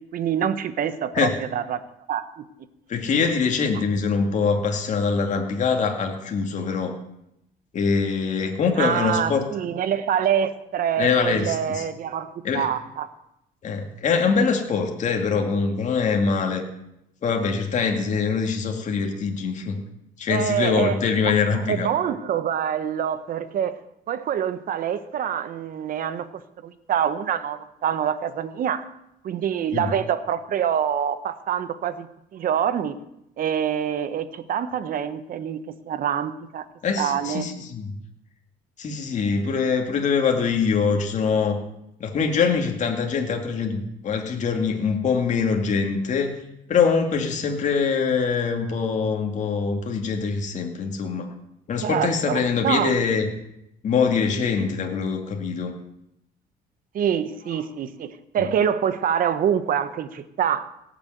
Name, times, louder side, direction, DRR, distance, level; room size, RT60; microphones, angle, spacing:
voice 1, 0.1-1.8 2.1-2.5 3.7-3.8 8.8-13.1 20.3-23.8 24.1-26.3 26.6-28.9 29.2-32.1 32.3-33.0 33.4-36.6 37.0-37.4 51.8-53.0 56.9-60.7, right 9 dB, 55° right, 13 dB, 1.1 m, -26 dB
voice 2, 2.9-6.9 7.7-9.4 11.0-11.9 12.4-12.7 13.6-16.6 17.2-19.8 20.2-21.9 29.7-29.9 36.8-37.9 38.8-41.6 42.0-46.4 46.7-51.3 51.7-53.3 53.8-55.7 58.4-58.5, left 5 dB, 45° left, 3 dB, 2.4 m, -23 dB
17.5 x 7.0 x 8.0 m, 0.83 s
cardioid pair, 110°, 17 cm